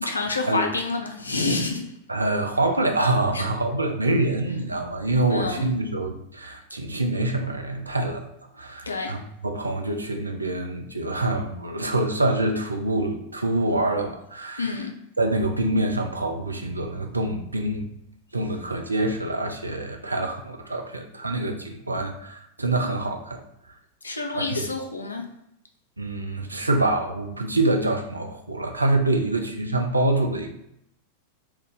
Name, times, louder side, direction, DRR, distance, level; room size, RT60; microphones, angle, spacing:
voice 1, 0.0-1.9 3.3-3.5 5.3-5.7 8.9-9.1 14.6-14.9 24.0-25.2, left 3 dB, 80° left, 3 dB, 0.4 m, -28 dB
voice 2, 2.1-8.3 8.5-14.8 15.2-17.9 18.3-23.4 24.3-24.7 26.0-30.5, right 2 dB, 80° right, 4 dB, 0.3 m, -25 dB
2.6 x 2.3 x 3.6 m, 0.79 s
figure-of-eight pair, 90°, 0 cm